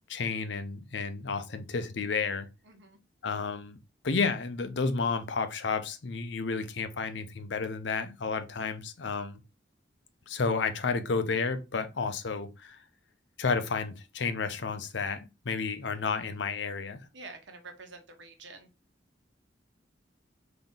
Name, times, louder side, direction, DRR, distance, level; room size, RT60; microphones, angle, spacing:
voice 1, 0.1-2.5 3.2-3.8 4.0-9.4 10.3-12.8 13.4-17.0, left 4 dB, 70° left, 0.6 m, -31 dB
voice 2, 2.6-3.0 17.1-18.7, right 3 dB, 70° right, 1.0 m, -47 dB
3.9 x 2.9 x 3.6 m
head